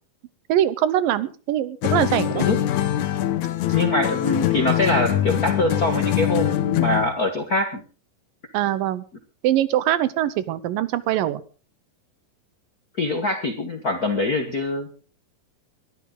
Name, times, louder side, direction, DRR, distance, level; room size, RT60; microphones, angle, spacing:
voice 1, 0.5-2.5 8.5-9.0 9.4-11.4, right 12 dB, 80° right, 15 dB, 2.7 m, -22 dB
sound 1, 1.8-7.2, left 12 dB, 70° left, 2.1 m, -23 dB
voice 2, 3.7-7.8 13.0-14.9, left 2 dB, 50° left, 4 dB, 1.1 m, -23 dB
22.0 x 12.5 x 3.9 m, 0.36 s
omnidirectional pair, 4.0 m